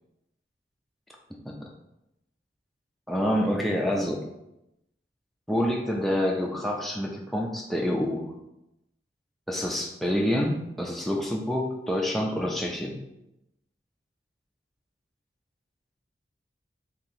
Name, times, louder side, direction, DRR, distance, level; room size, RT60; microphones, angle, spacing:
voice 1, 3.1-4.2 5.5-8.3 9.5-13.0, equal, ahead, -1 dB, 0.3 m, -27 dB
2.8 x 2.7 x 4.1 m, 0.87 s
head